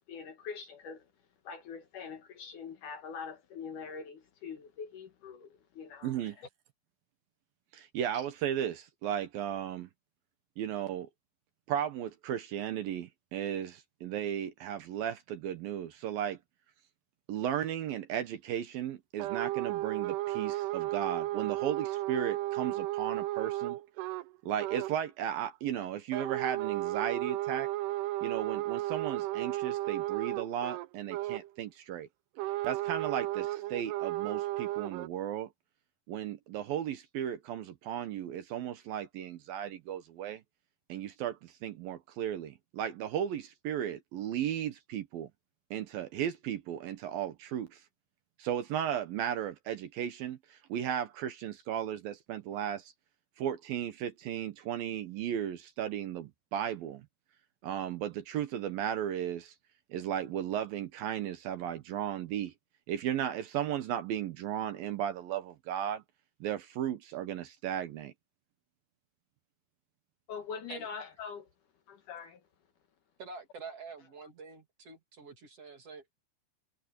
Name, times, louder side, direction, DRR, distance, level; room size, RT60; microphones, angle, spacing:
voice 1, 0.1-1.1 1.4-5.5 5.7-6.5 70.3-71.5 71.9-72.4, left 6 dB, 60° left, 2.5 m, -43 dB
voice 2, 6.0-6.4 7.7-9.9 10.6-11.1 11.7-16.4 17.3-23.8 24.4-27.7 28.2-32.1 32.6-35.5 36.1-40.4 40.9-45.3 45.7-47.8 48.4-52.9 53.4-57.1 57.6-59.5 59.9-62.5 62.9-66.0 66.4-68.1, right 10 dB, 70° right, 2.7 m, -35 dB
sound 1, 19.2-24.3 24.6-25.0 26.1-31.5 32.4-35.1, right 16 dB, 85° right, 2.9 m, -34 dB
voice 3, 73.2-76.2, right 4 dB, 45° right, 2.7 m, -47 dB
omnidirectional pair, 4.7 m